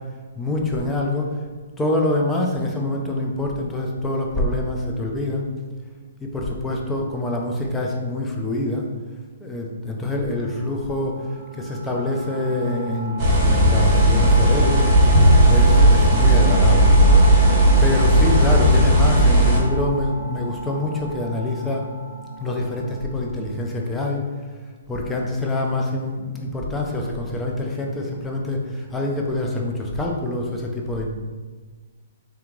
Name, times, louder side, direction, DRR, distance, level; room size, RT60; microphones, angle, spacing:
voice 1, 0.4-1.4 1.8-5.5 6.2-8.9 9.4-11.3 11.5-14.9 15.5-16.9 17.8-21.9 22.4-24.3 24.9-31.1, left 1 dB, 10° left, -1 dB, 0.5 m, -25 dB
sound 1, 10.3-23.7, right 1 dB, 55° left, 1.0 m, -33 dB
sound 2, 13.2-19.6, right 1 dB, 20° right, 1.3 m, -15 dB
3.5 x 2.9 x 3.7 m, 1.4 s
hypercardioid pair, 150°, 0 cm